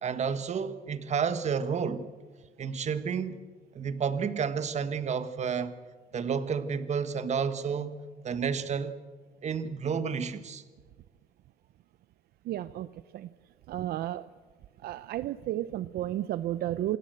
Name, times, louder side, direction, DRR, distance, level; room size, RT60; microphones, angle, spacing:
voice 1, 0.0-2.1 2.6-3.4 3.7-5.7 6.1-8.0 8.2-9.0 9.4-10.6, right 6 dB, 40° right, 1.5 m, -30 dB
voice 2, 12.5-12.9 13.1-13.3 13.7-14.3 14.8-17.0, right 13 dB, 70° right, 0.6 m, -32 dB
27.5 x 17.0 x 7.9 m
cardioid pair, 110°, 17 cm